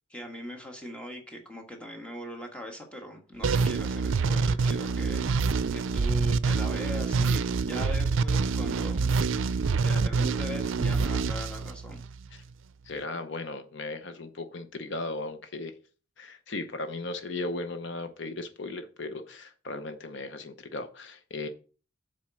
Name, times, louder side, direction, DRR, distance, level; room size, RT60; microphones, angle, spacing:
voice 1, 0.1-5.2 5.7-9.2 9.4-12.0, equal, 5° left, 1.5 m, -40 dB
sound 1, 3.4-12.3, right 4 dB, 80° right, 0.4 m, -26 dB
voice 2, 12.9-15.7 16.2-21.5, left 2 dB, 65° left, 0.8 m, -36 dB
7.5 x 4.5 x 6.2 m
head